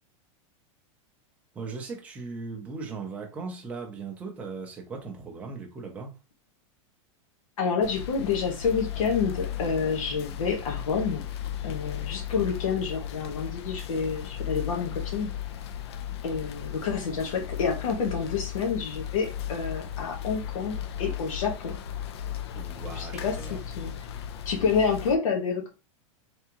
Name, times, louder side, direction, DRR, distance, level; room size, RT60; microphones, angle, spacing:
voice 1, 1.5-6.2 22.5-23.6, right 4 dB, 10° right, 0.5 m, -38 dB
voice 2, 7.6-11.2 11.6-15.3 16.2-21.7 22.9-23.9 24.4-25.7, left 5 dB, 80° left, 1.4 m, -28 dB
sound 1, 7.8-25.2, left 10 dB, 50° left, 0.4 m, -36 dB
3.5 x 3.5 x 2.9 m
supercardioid pair, 180°, 17 cm